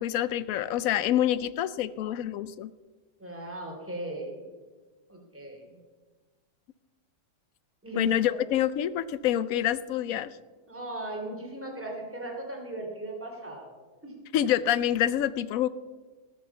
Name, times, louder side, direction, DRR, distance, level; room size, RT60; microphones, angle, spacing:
voice 1, 0.0-2.7 8.0-10.3 14.3-15.7, left 11 dB, 70° left, 16 dB, 0.8 m, -26 dB
voice 2, 3.2-4.5 5.1-5.6 7.8-8.1 10.7-13.7 14.0-14.1, right 2 dB, 5° right, 0 dB, 2.9 m, -37 dB
19.0 x 7.2 x 7.0 m, 1.4 s
omnidirectional pair, 1.9 m